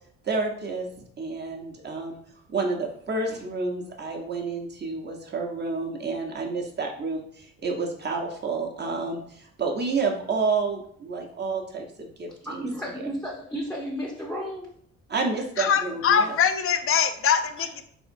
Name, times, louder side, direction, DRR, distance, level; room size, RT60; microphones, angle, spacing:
voice 1, 0.2-0.9 1.2-2.2 2.5-12.7 15.1-16.4, right 4 dB, 35° right, 1 dB, 0.7 m, -29 dB
voice 2, 12.4-14.7 17.6-17.8, equal, 5° left, -1 dB, 0.6 m, -33 dB
voice 3, 15.6-17.8, left 7 dB, 45° left, 9 dB, 0.4 m, -23 dB
3.5 x 2.9 x 2.6 m, 0.63 s
cardioid pair, 90°, 30 cm